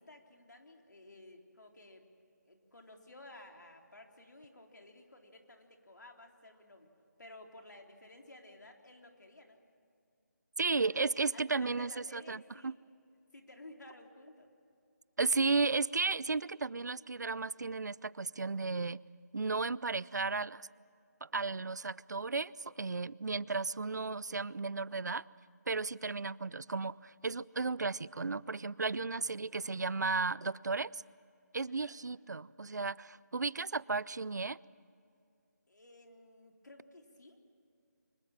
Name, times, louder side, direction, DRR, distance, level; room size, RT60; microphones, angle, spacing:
voice 1, 0.0-2.1 2.5-6.9 7.2-9.6 10.6-11.0 11.3-12.8 13.3-14.5 29.1-29.3 31.7-32.0 35.7-37.4, left 2 dB, 90° left, 2 dB, 3.8 m, -55 dB
voice 2, 10.6-12.7 15.2-19.0 19.3-20.6 21.2-25.2 25.7-31.0 31.5-34.6, right 4 dB, 75° right, 22 dB, 0.5 m, -34 dB
25.0 x 22.0 x 7.5 m, 2.5 s
figure-of-eight pair, 180°, 10 cm